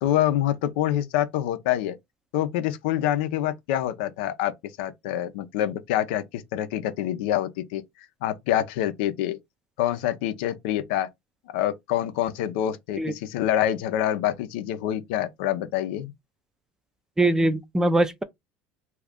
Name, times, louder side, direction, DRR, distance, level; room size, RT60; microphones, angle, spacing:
voice 1, 0.0-2.0 2.3-4.5 4.8-7.8 8.2-9.4 9.8-11.1 11.5-16.1, left 12 dB, 80° left, 0.6 m, -26 dB
voice 2, 17.2-18.2, right 2 dB, 10° right, 0.5 m, -22 dB
2.7 x 2.4 x 3.4 m
supercardioid pair, 105°, 6 cm